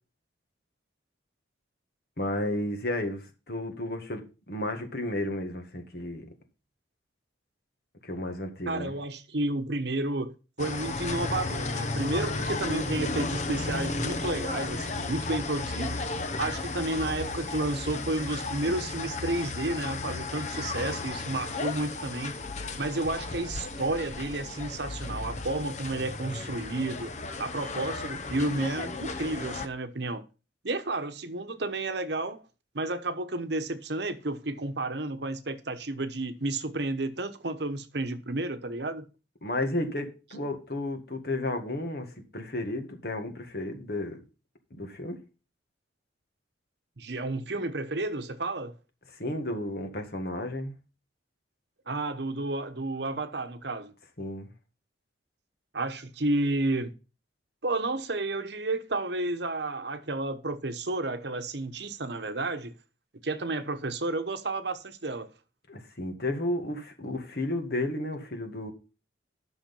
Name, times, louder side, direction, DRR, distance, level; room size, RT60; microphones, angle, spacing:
voice 1, 2.2-6.2 8.0-8.9 39.4-44.2 44.7-45.2 49.2-50.8 54.2-54.5 65.7-68.7, left 1 dB, 55° left, 1.9 m, -33 dB
voice 2, 8.7-16.0 16.4-22.3 22.8-27.1 27.4-30.2 30.6-32.4 32.7-39.0 47.0-48.7 51.9-53.9 55.7-56.9 57.6-62.7 63.2-65.3, right 2 dB, 60° right, 1.0 m, -31 dB
sound 1, 10.6-29.7, left 3 dB, 40° left, 0.7 m, -34 dB
10.5 x 6.3 x 5.4 m
head